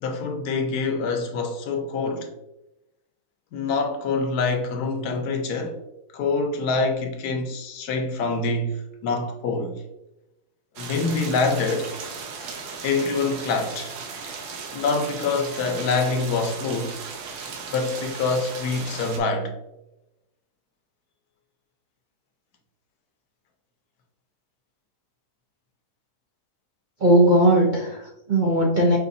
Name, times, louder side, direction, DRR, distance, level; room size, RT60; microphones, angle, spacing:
voice 1, 0.0-2.3 3.5-5.8 6.1-9.8 10.8-11.9 12.8-13.9 14.7-17.0 17.7-19.5, left 3 dB, 80° left, 1.2 m, -25 dB
sound 1, 10.8-19.2, right 5 dB, 85° right, 1.3 m, -36 dB
voice 2, 27.0-29.0, right 1 dB, 55° right, 0.5 m, -18 dB
5.7 x 3.0 x 2.6 m
omnidirectional pair, 1.6 m